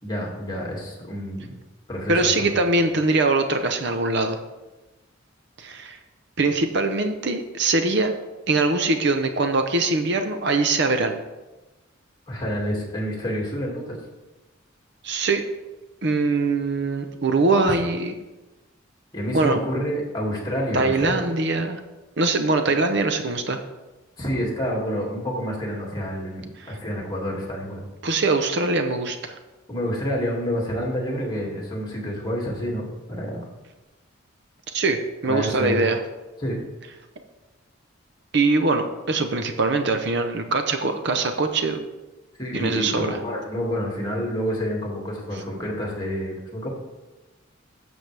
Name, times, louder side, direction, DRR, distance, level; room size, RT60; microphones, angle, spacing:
voice 1, 0.0-1.5 1.9-2.5 12.3-14.0 19.1-21.3 24.2-27.8 29.7-33.4 35.2-35.8 36.4-36.6 42.4-46.7, equal, 20° left, -2 dB, 2.2 m, -28 dB
voice 2, 2.1-4.4 5.6-6.0 6.4-8.1 8.5-11.2 15.0-15.4 16.0-18.1 19.3-19.6 20.7-21.8 22.2-23.6 26.6-26.8 28.0-29.4 34.7-36.0 38.3-41.9 42.5-43.2, right 3 dB, 55° right, 7 dB, 0.7 m, -22 dB
12.0 x 7.0 x 3.4 m, 1.1 s
head